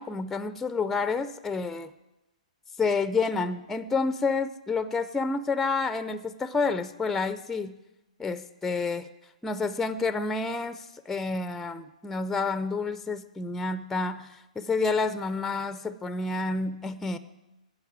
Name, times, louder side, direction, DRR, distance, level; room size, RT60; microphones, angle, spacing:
voice 1, 0.0-1.9 2.8-7.8 8.2-9.1 9.4-17.2, left 4 dB, 5° left, 14 dB, 0.4 m, -29 dB
10.5 x 7.4 x 8.7 m, 0.98 s
figure-of-eight pair, 120°, 4 cm